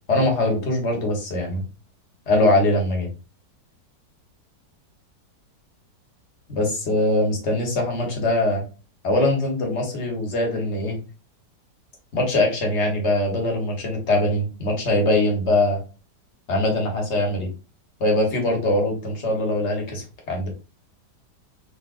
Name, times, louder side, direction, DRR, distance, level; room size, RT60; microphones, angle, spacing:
voice 1, 0.1-1.6 2.3-3.1 6.5-8.6 9.0-11.0 12.1-15.8 16.5-17.5 18.0-20.5, left 1 dB, 45° left, 1 dB, 1.2 m, -22 dB
4.0 x 2.8 x 2.3 m, 0.33 s
omnidirectional pair, 1.8 m